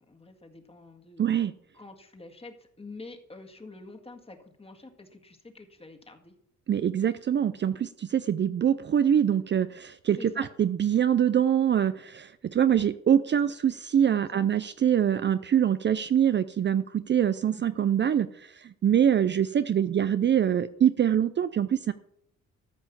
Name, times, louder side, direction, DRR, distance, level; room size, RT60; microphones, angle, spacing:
voice 1, 0.0-1.3 1.7-6.3 10.2-10.5 13.3-13.4 14.0-14.5, left 3 dB, 20° left, 4 dB, 1.9 m, -47 dB
voice 2, 1.2-1.5 6.7-21.9, right 9 dB, 40° right, 13 dB, 0.5 m, -24 dB
14.0 x 5.5 x 6.9 m, 0.74 s
cardioid pair, 90°, 30 cm